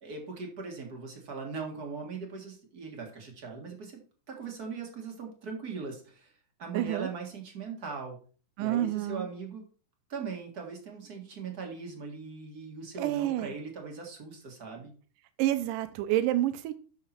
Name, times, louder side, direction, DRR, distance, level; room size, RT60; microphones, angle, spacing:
voice 1, 0.0-4.0 4.3-6.3 6.6-8.2 8.6-9.6 10.1-14.9, right 5 dB, 40° right, 1.5 m, -40 dB
voice 2, 6.7-7.1 8.6-9.3 13.0-13.5 15.4-16.7, right 13 dB, 85° right, 2.2 m, -28 dB
8.4 x 6.5 x 4.3 m
omnidirectional pair, 3.7 m